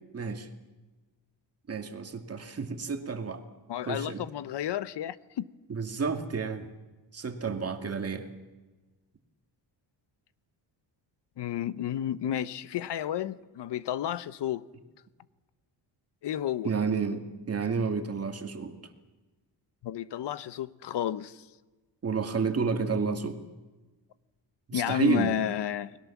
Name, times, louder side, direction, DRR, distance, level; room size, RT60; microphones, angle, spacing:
voice 1, 0.1-0.5 1.7-3.4 3.9-4.2 5.7-6.7 7.1-8.3 16.6-18.7 22.0-23.4 24.7-25.4, right 5 dB, 30° right, 2.4 m, -30 dB
voice 2, 3.7-5.5 11.4-14.6 16.2-16.7 19.8-21.4 24.7-26.0, left 10 dB, 65° left, 1.0 m, -31 dB
29.5 x 20.5 x 7.3 m
cardioid pair, 135°, 45 cm